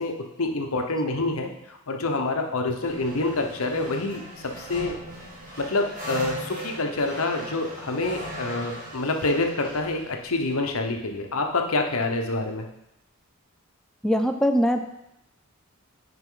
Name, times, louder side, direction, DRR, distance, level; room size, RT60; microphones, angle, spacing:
voice 1, 0.0-5.0 5.6-12.7, left 2 dB, 75° left, 3 dB, 1.0 m, -27 dB
sound 1, 2.8-11.4, right 1 dB, 40° right, 1.8 m, -39 dB
voice 2, 14.0-14.9, equal, 5° left, 4 dB, 0.4 m, -22 dB
9.5 x 5.2 x 3.8 m, 0.84 s
head